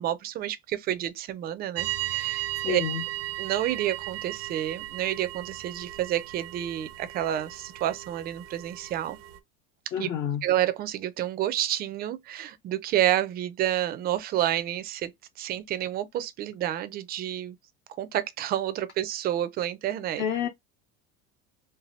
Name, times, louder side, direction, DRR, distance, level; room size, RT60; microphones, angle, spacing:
voice 1, 0.0-2.8 3.4-9.2 10.0-10.1 10.4-15.1 15.4-17.6 18.0-20.2, right 12 dB, 30° right, 0.4 m, -29 dB
sound 1, 1.7-9.4, right 15 dB, 80° right, 0.6 m, -36 dB
voice 2, 2.6-3.0 9.9-10.4 20.2-20.5, left 9 dB, 40° left, 0.5 m, -28 dB
3.3 x 2.2 x 2.4 m
cardioid pair, 145°, 30 cm